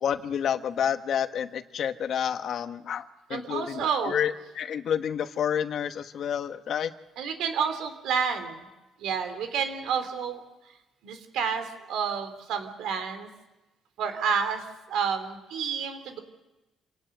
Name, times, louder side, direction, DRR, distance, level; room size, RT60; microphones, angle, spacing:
voice 1, 0.0-6.9, left 8 dB, 60° left, 10 dB, 1.2 m, -29 dB
voice 2, 3.3-4.2 7.2-8.7 9.0-10.4 11.0-13.3 14.0-16.2, right 6 dB, 85° right, 8 dB, 3.5 m, -30 dB
27.5 x 17.5 x 9.2 m, 1.0 s
cardioid pair, 120°, 0 cm